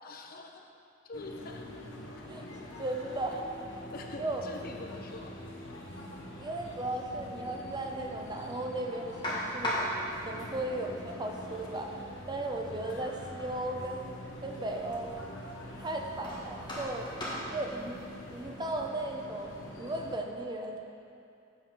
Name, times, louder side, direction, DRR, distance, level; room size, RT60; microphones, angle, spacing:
voice 1, 0.0-0.7 1.0-1.7 3.9-5.4 17.5-17.6, left 2 dB, 50° left, 3 dB, 0.7 m, -45 dB
sound 1, 1.1-20.2, left 1 dB, 80° left, 1.1 m, -45 dB
voice 2, 2.3-3.4 4.2-4.4 6.4-9.9 10.3-12.0 12.3-14.1 14.4-15.1 15.8-17.2 17.5-18.0 18.3-20.8, right 2 dB, 20° right, 2 dB, 0.6 m, -36 dB
sound 2, 9.2-18.8, equal, 25° left, 1.5 m, -40 dB
7.6 x 4.7 x 6.0 m, 2.6 s
head